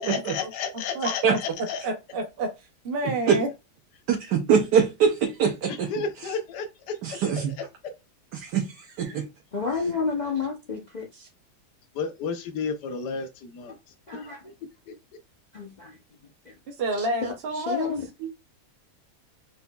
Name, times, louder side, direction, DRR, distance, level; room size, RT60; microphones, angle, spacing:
voice 1, 0.0-1.9 5.7-7.0 7.6-7.7 11.9-13.8 14.1-14.3 14.9-15.0, left 5 dB, 85° left, 1.3 m, -32 dB
voice 2, 1.0-1.4 1.8-2.5 2.8-3.5 16.7-17.9, right 1 dB, 55° right, 0.6 m, -29 dB
voice 3, 4.1-5.9 7.0-7.5 8.3-8.7 9.0-9.2, right 7 dB, 80° right, 1.4 m, -23 dB
voice 4, 9.5-11.3 14.1-14.5 15.5-16.0 16.5-16.6 16.9-18.0, left 5 dB, 50° left, 0.5 m, -31 dB
4.5 x 4.2 x 2.2 m
omnidirectional pair, 1.8 m